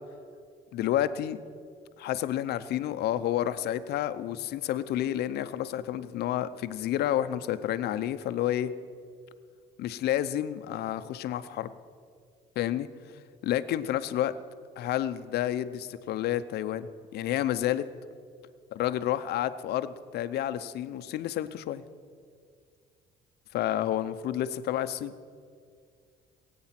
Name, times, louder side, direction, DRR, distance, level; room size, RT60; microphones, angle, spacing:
voice 1, 0.7-1.4 2.0-8.7 9.8-11.7 12.6-12.9 13.4-14.3 14.8-17.8 18.7-21.8 23.5-25.2, left 12 dB, 70° left, 12 dB, 0.7 m, -30 dB
22.0 x 8.6 x 5.9 m, 2.1 s
cardioid pair, 110°, 17 cm